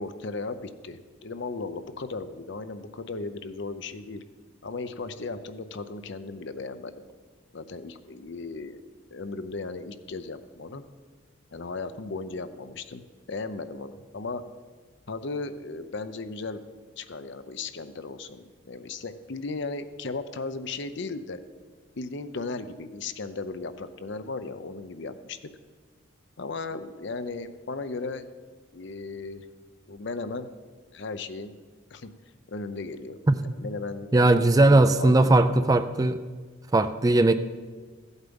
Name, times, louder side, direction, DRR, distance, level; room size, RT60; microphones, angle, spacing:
voice 1, 0.0-4.2 4.6-6.9 7.5-8.8 9.1-10.8 11.5-13.0 13.3-14.4 15.1-16.6 17.0-21.4 22.0-25.5 26.4-28.3 28.7-29.4 29.9-30.5 30.9-31.5 31.9-32.1 32.5-35.6, left 3 dB, 60° left, 11 dB, 0.6 m, -36 dB
voice 2, 33.3-33.6 34.1-36.2 36.7-37.3, right 2 dB, 15° right, 11 dB, 0.4 m, -19 dB
14.5 x 8.2 x 5.3 m, 1.5 s
head